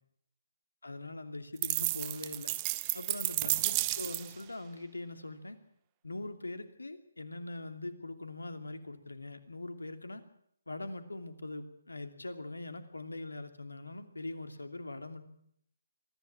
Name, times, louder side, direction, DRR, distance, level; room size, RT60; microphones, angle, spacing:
voice 1, 0.8-2.5 2.9-5.6 6.0-10.2 10.7-15.2, left 2 dB, 85° left, 8 dB, 2.8 m, -42 dB
sound 1, 1.6-4.4, right 18 dB, 25° right, 0.9 m, -32 dB
24.0 x 14.0 x 8.7 m, 0.70 s
figure-of-eight pair, 145°, 0 cm